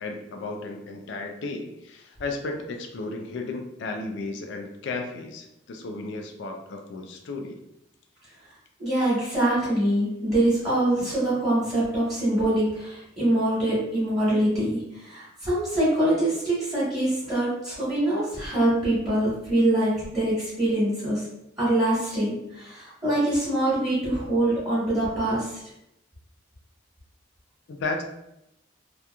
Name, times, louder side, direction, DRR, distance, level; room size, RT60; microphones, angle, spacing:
voice 1, 0.0-7.6 27.7-28.0, left 3 dB, 65° left, 3 dB, 0.3 m, -34 dB
voice 2, 8.8-21.2 21.6-25.6, right 1 dB, 15° right, -11 dB, 1.2 m, -24 dB
2.8 x 2.4 x 2.2 m, 0.86 s
head